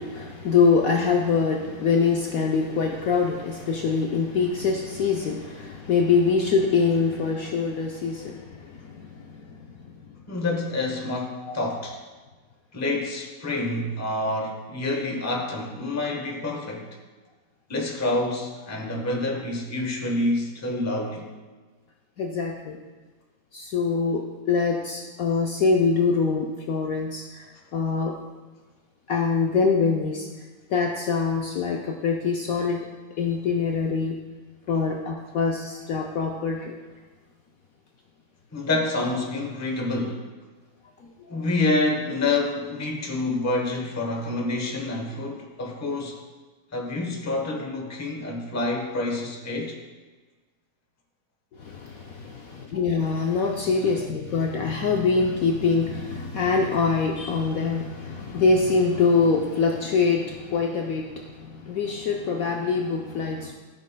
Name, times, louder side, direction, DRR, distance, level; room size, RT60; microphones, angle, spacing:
voice 1, 0.0-9.9 11.5-11.6 22.2-22.8 23.5-28.1 29.1-30.3 30.7-32.9 33.2-34.2 34.7-36.7 51.5-63.5, left 4 dB, 65° left, 1 dB, 0.9 m, -24 dB
voice 2, 10.3-12.0 12.7-16.9 17.7-21.3 38.5-40.3 41.3-46.2 46.7-49.8, left 2 dB, 15° left, 1 dB, 0.7 m, -27 dB
13.5 x 6.4 x 2.2 m, 1.3 s
omnidirectional pair, 1.9 m